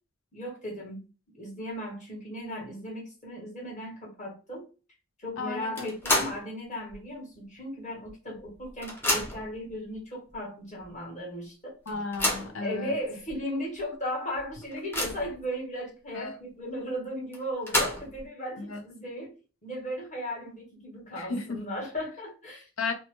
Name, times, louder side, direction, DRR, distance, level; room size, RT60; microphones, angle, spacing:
voice 1, 0.3-1.0 1.3-4.7 5.2-11.8 12.6-19.3 19.6-22.7, equal, 35° left, 1.1 m, -36 dB
voice 2, 5.4-5.9 11.9-13.0 16.1-16.4 18.6-18.8 21.2-21.6 22.8-22.9, left 4 dB, 70° left, 0.6 m, -34 dB
sound 1, 5.8-6.5 6.9-7.0 8.1-8.2 8.4-9.6 10.3-10.4 10.8-10.9 11.9-12.6 13.3-13.4 13.8-13.9 14.4-15.4 17.3-18.2, left 1 dB, 10° left, 0.5 m, -29 dB
2.7 x 2.1 x 3.0 m
head